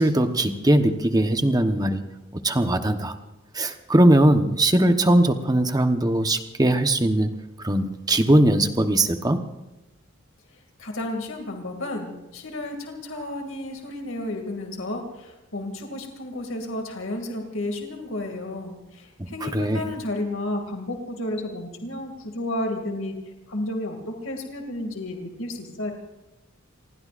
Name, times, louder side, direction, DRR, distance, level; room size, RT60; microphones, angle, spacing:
voice 1, 0.0-2.0 2.4-3.2 3.5-9.4 19.2-19.8, right 1 dB, 20° right, 7 dB, 1.1 m, -20 dB
voice 2, 10.5-23.2 23.5-25.9, left 1 dB, 75° left, 3 dB, 2.5 m, -32 dB
28.5 x 19.5 x 2.6 m, 1.0 s
head